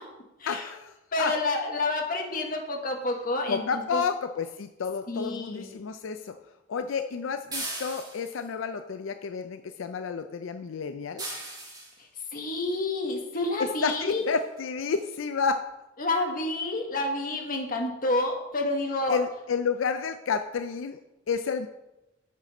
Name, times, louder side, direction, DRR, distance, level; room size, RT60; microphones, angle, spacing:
voice 1, 0.5-1.4 3.5-6.4 6.7-11.2 13.6-15.6 19.1-21.0 21.3-21.7, left 5 dB, 85° left, 9 dB, 0.4 m, -30 dB
voice 2, 1.1-4.0 5.1-5.7 12.3-14.2 16.0-19.2, left 2 dB, 45° left, 2 dB, 1.3 m, -29 dB
sound 1, 7.5-8.5 11.2-12.0 13.4-13.5 14.1-14.3 14.6-14.7 15.0-15.1, right 2 dB, 20° right, 2.2 m, -37 dB
7.4 x 5.8 x 5.3 m, 0.96 s
head